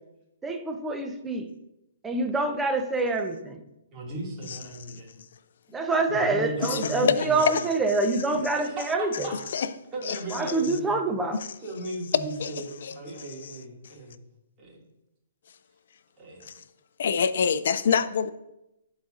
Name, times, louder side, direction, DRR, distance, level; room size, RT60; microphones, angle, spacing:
voice 1, 0.4-1.5 2.0-3.6 5.7-9.3 10.3-11.4, right 2 dB, 10° right, 0.6 m, -26 dB
voice 2, 3.9-5.1 6.1-7.4 8.3-9.4 9.9-11.0 11.6-14.2 14.6-14.7 16.2-16.5, right 1 dB, 25° right, 2.2 m, -36 dB
voice 3, 6.6-7.6 9.5-9.7 10.0-10.2 12.4-12.5 12.8-12.9 13.4-13.6 16.5-16.6 17.0-18.3, left 6 dB, 65° left, 0.4 m, -26 dB
11.0 x 4.0 x 2.5 m
hypercardioid pair, 140°, 0 cm